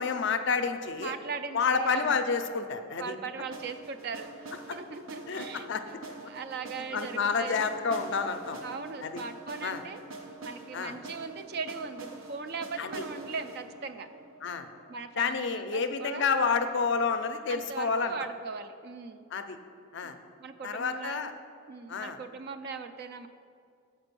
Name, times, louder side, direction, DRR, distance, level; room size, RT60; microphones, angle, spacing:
voice 1, 0.0-1.1 1.5-3.1 5.3-6.0 6.9-8.6 9.0-9.2 9.6-9.8 10.7-11.0 12.8-13.0 14.4-14.7 15.2-18.1 19.3-19.6 19.9-20.2 20.6-21.3 21.9-22.2, left 5 dB, 55° left, 8 dB, 0.4 m, -29 dB
voice 2, 1.0-2.2 3.0-7.7 8.6-10.0 10.4-14.1 14.9-16.3 17.5-19.2 20.0-20.1 20.4-21.3 21.7-23.3, right 5 dB, 45° right, 10 dB, 0.3 m, -39 dB
sound 1, 3.5-15.4, right 2 dB, 70° right, 0.8 m, -45 dB
6.8 x 4.4 x 6.7 m, 2.4 s
head